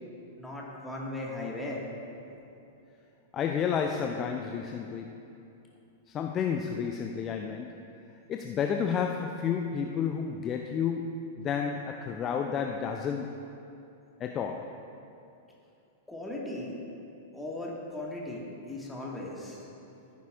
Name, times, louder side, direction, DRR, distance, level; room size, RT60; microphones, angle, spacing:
voice 1, 0.4-1.8 2.3-2.4 16.1-16.8 17.3-19.7, left 1 dB, 5° left, -4 dB, 1.9 m, -37 dB
voice 2, 3.3-5.3 6.1-7.9 8.3-13.5 14.2-14.8, left 7 dB, 30° left, 4 dB, 0.4 m, -31 dB
14.0 x 9.5 x 2.5 m, 2.8 s
figure-of-eight pair, 100°, 0 cm